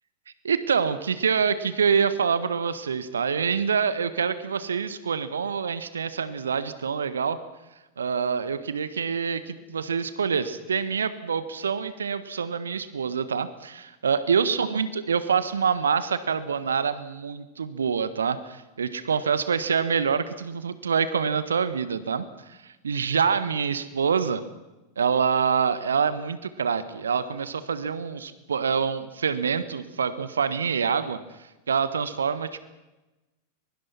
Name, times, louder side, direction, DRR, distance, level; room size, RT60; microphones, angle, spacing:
voice 1, 0.4-7.4 8.0-22.6 22.8-24.4 25.0-31.2 31.7-32.6, right 6 dB, 70° right, 13 dB, 1.5 m, -26 dB
23.0 x 22.5 x 6.0 m, 1.1 s
figure-of-eight pair, 90°, 0 cm